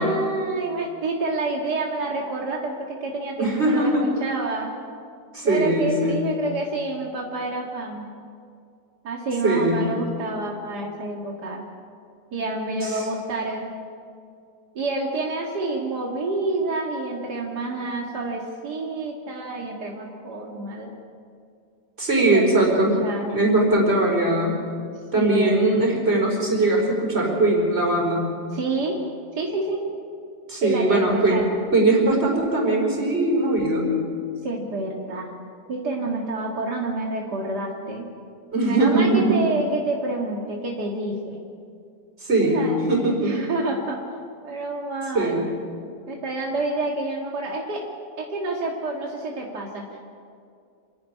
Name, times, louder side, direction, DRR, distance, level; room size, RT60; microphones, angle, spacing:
voice 1, 0.0-4.7 5.4-8.1 9.0-11.7 12.3-13.7 14.7-20.9 22.3-23.4 25.1-25.6 28.5-28.9 29.4-29.8 30.6-31.5 34.4-35.3 35.7-38.0 38.7-41.4 42.4-44.0 44.4-45.4 46.1-47.8 48.2-50.0, right 2 dB, 80° right, -1 dB, 2.5 m, -28 dB
voice 2, 3.4-4.0 5.3-6.3 9.4-9.8 12.8-13.0 22.0-22.9 23.3-24.6 25.1-28.3 30.5-31.4 31.7-33.9 38.5-39.4 42.2-43.5 45.1-45.4, right 2 dB, 40° right, -1 dB, 5.0 m, -20 dB
27.5 x 10.5 x 9.9 m, 2.4 s
omnidirectional pair, 1.7 m